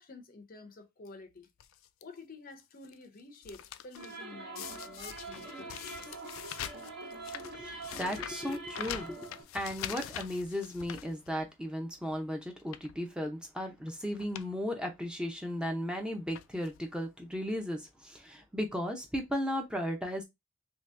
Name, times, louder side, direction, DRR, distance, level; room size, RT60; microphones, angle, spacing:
voice 1, 0.0-1.5 2.0-6.2, left 3 dB, 45° left, 0.6 m, -50 dB
sound 1, 1.6-2.0 2.6-4.2 4.6-11.7 12.0-12.2 12.6-13.0 13.8-13.9 14.2-14.5 14.8-14.9 15.8-16.0 16.3-16.8 17.6-17.7 17.9-18.0, left 11 dB, 85° left, 0.3 m, -44 dB
sound 2, 4.0-9.4, right 3 dB, 55° right, 1.2 m, -44 dB
voice 2, 7.4-9.2 9.5-20.2, equal, 5° right, 0.6 m, -35 dB
2.9 x 2.8 x 3.2 m
head